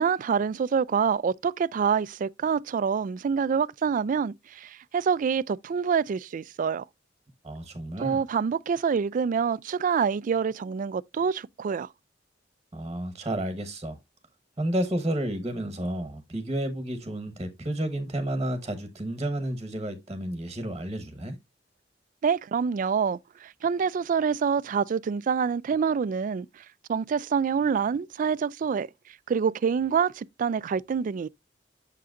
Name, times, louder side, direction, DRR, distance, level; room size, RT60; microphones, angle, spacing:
voice 1, 0.0-6.8 8.0-11.9 22.2-26.6 26.9-28.9 29.3-31.3, right 6 dB, 45° right, 0.3 m, -26 dB
voice 2, 7.4-8.2 12.7-14.0 14.6-21.4, right 1 dB, 25° right, 1.1 m, -31 dB
7.7 x 6.8 x 2.4 m
head